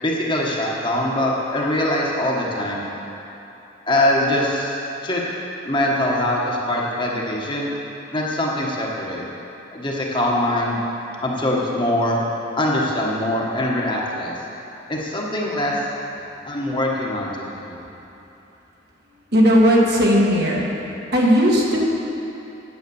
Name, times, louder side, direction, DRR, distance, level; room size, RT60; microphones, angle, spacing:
voice 1, 0.0-2.8 3.9-5.2 5.6-7.7 8.1-9.2 9.7-10.8 11.2-12.2 12.6-14.3 14.9-15.8 16.4-17.8, left 1 dB, 25° left, -3 dB, 1.3 m, -23 dB
voice 2, 19.3-20.7 21.1-21.9, equal, 50° right, -3 dB, 1.8 m, -16 dB
9.5 x 9.1 x 7.1 m, 3.0 s
head